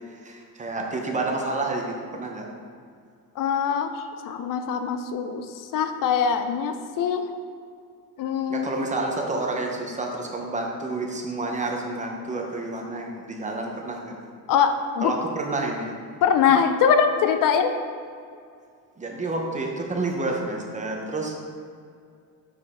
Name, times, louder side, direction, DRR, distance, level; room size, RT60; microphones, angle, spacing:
voice 1, 0.1-2.5 8.5-14.1 15.0-15.9 19.0-21.6, right 2 dB, 20° right, 1 dB, 0.8 m, -29 dB
voice 2, 3.4-5.5 5.7-7.3 8.2-8.7 14.5-15.1 16.2-17.7, left 7 dB, 65° left, 7 dB, 0.5 m, -22 dB
6.2 x 5.4 x 3.6 m, 2.3 s
cardioid pair, 135°, 35 cm